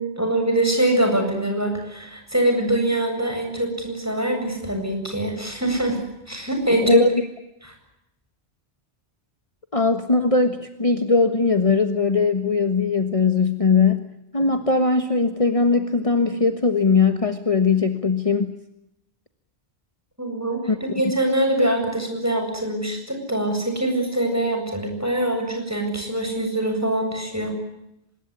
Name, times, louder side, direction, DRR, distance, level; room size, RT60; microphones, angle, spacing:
voice 1, 0.0-6.0 6.3-7.0 7.6-7.7 20.2-20.6 20.9-27.5, right 1 dB, 15° right, 4 dB, 7.9 m, -23 dB
voice 2, 6.8-7.1 9.7-18.5 20.7-20.8, left 4 dB, 30° left, 7 dB, 1.5 m, -20 dB
24.5 x 22.0 x 9.9 m, 0.85 s
omnidirectional pair, 1.1 m